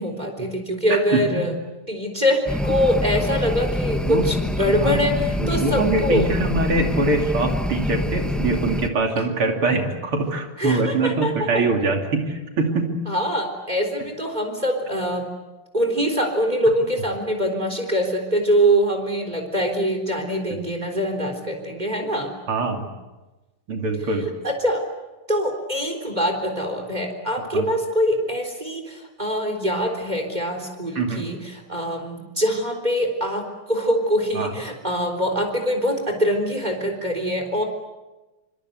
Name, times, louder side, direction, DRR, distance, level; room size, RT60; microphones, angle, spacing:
voice 1, 0.0-1.5 1.9-6.3 9.2-9.3 10.6-11.6 13.1-15.3 15.7-22.3 24.4-24.8 25.3-37.6, equal, 20° right, 4 dB, 4.0 m, -23 dB
voice 2, 0.9-1.5 4.0-4.3 4.7-13.0 20.5-20.6 22.5-22.9 23.7-24.3 27.5-27.7 31.0-31.3 34.4-34.5, right 3 dB, 80° right, 3 dB, 3.8 m, -23 dB
sound 1, 2.5-8.9, left 1 dB, ahead, 0.5 m, -26 dB
26.5 x 25.5 x 8.0 m, 1.1 s
omnidirectional pair, 2.4 m